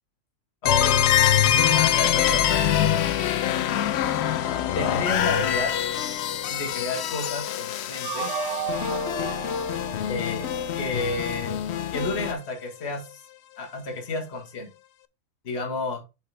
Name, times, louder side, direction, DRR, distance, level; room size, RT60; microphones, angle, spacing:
voice 1, 0.6-1.1 1.8-2.7 4.7-5.7 6.5-8.3 10.0-10.5 10.8-11.6 11.9-13.2 13.6-14.7 15.4-16.0, left 3 dB, 45° left, 3 dB, 1.8 m, -31 dB
sound 1, 0.7-10.4, left 12 dB, 85° left, 1.1 m, -26 dB
sound 2, 0.7-12.3, left 9 dB, 65° left, 0.6 m, -28 dB
sound 3, 8.0-11.2, right 6 dB, 70° right, 1.4 m, -33 dB
7.4 x 5.5 x 3.4 m, 0.27 s
omnidirectional pair, 1.7 m